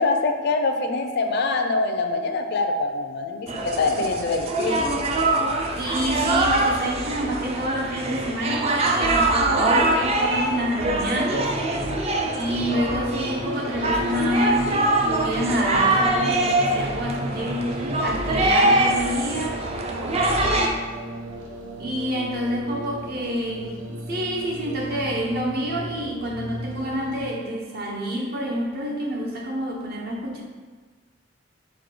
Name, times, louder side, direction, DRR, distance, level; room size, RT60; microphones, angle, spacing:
voice 1, 0.0-4.9, left 3 dB, 60° left, 6 dB, 0.4 m, -24 dB
sound 1, 3.5-20.7, right 2 dB, 35° right, 0.4 m, -23 dB
voice 2, 5.8-11.5 12.3-19.6 21.8-30.4, equal, 55° right, -1 dB, 0.8 m, -28 dB
sound 2, 12.0-27.2, equal, 90° right, 0.7 m, -36 dB
4.6 x 2.2 x 4.5 m, 1.4 s
head